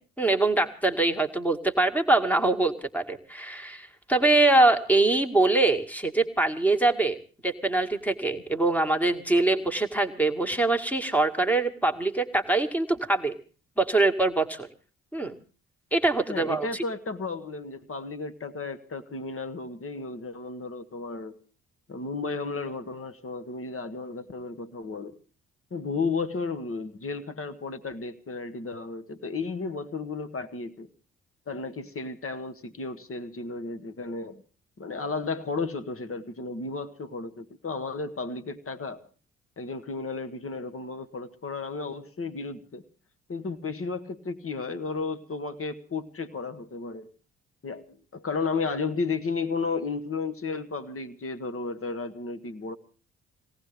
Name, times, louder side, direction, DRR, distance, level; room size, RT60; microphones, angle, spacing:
voice 1, 0.0-7.2 7.4-13.4 13.8-14.7 15.1-15.4 15.9-16.8, right 2 dB, 5° left, 6 dB, 2.1 m, -24 dB
voice 2, 16.3-21.4 21.9-25.1 25.7-30.9 31.5-34.4 34.8-39.0 39.6-42.8 43.3-47.1 47.6-52.8, left 4 dB, 35° left, 9 dB, 1.7 m, -33 dB
22.0 x 18.0 x 3.5 m, 0.36 s
figure-of-eight pair, 45°, 40 cm